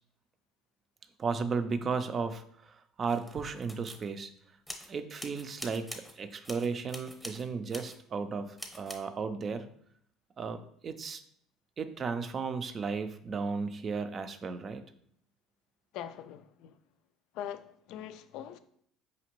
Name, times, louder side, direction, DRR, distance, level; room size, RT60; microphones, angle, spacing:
voice 1, 1.2-4.3 4.9-9.7 10.4-11.2 11.8-14.8, right 5 dB, 40° right, 0.4 m, -35 dB
sound 1, 3.0-4.1 4.7-4.9 5.2-6.2 6.4-7.5 7.7-8.0 8.6-9.0, equal, ahead, 0.8 m, -45 dB
voice 2, 15.9-16.8 17.3-18.6, left 10 dB, 70° left, 0.3 m, -42 dB
5.0 x 2.8 x 3.0 m
supercardioid pair, 85°, 0 cm